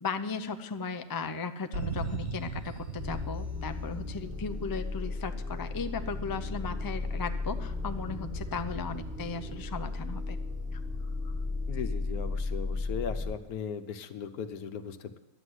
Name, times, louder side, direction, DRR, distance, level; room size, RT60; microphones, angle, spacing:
voice 1, 0.0-10.4 10.7-10.8 11.2-11.3, left 5 dB, 35° left, 9 dB, 0.3 m, -36 dB
sound 1, 1.7-4.5, right 4 dB, 65° right, 2.0 m, -37 dB
sound 2, 3.0-13.3, left 3 dB, 10° right, 1.2 m, -35 dB
voice 2, 11.7-15.2, left 7 dB, 80° left, 9 dB, 1.3 m, -38 dB
11.5 x 7.9 x 9.8 m, 0.96 s
omnidirectional pair, 1.5 m